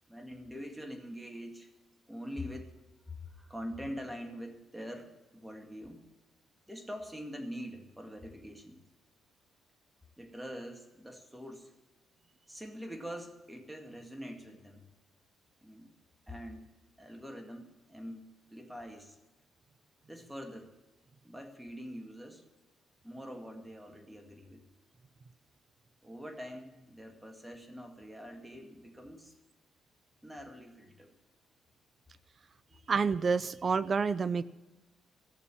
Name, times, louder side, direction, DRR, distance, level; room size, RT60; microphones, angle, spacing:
voice 1, 0.1-1.7 2.1-2.7 3.1-6.0 6.7-8.8 10.2-11.7 12.5-14.9 15.6-15.9 16.3-16.7 17.0-19.2 20.1-20.7 21.2-22.5 23.0-24.6 26.0-29.4 30.2-31.1, equal, 5° right, 4 dB, 2.1 m, -44 dB
voice 2, 32.9-34.4, right 5 dB, 40° right, 16 dB, 0.6 m, -28 dB
15.0 x 6.9 x 8.5 m, 1.1 s
cardioid pair, 90°, 0 cm